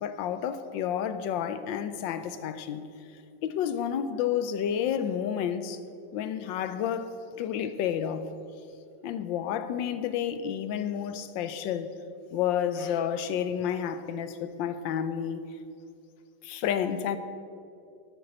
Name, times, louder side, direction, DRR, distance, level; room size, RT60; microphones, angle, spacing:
voice 1, 0.0-2.9 3.4-5.8 6.1-7.1 7.4-8.3 9.0-11.9 12.3-15.4 16.4-17.2, left 9 dB, 80° left, 11 dB, 1.4 m, -30 dB
12.5 x 6.9 x 6.4 m, 2.5 s
omnidirectional pair, 2.0 m